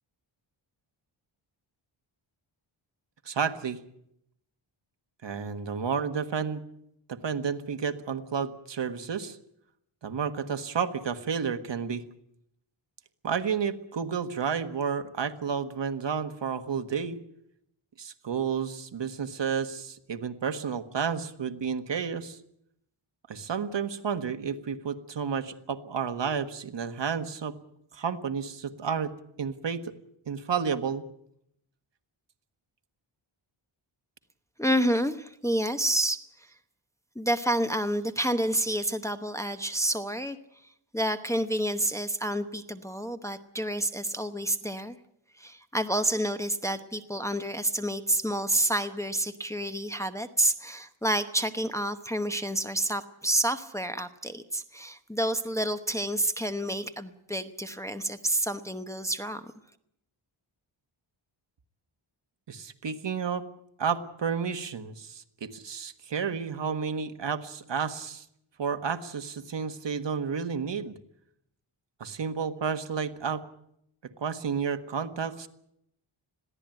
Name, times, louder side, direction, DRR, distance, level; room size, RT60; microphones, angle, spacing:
voice 1, 3.2-3.8 5.2-6.6 7.1-9.4 10.0-12.1 13.2-17.2 18.0-22.4 23.3-27.6 27.9-29.1 29.4-29.9 30.3-31.0 62.5-63.4 63.8-68.2 68.6-70.9 72.0-73.4 74.2-75.5, right 6 dB, 60° right, 8 dB, 1.5 m, -31 dB
voice 2, 34.6-36.5 37.1-40.4 40.9-45.0 45.4-59.5, right 1 dB, 5° left, 7 dB, 0.9 m, -29 dB
21.5 x 15.5 x 9.0 m, 0.75 s
wide cardioid pair, 150°, 49 cm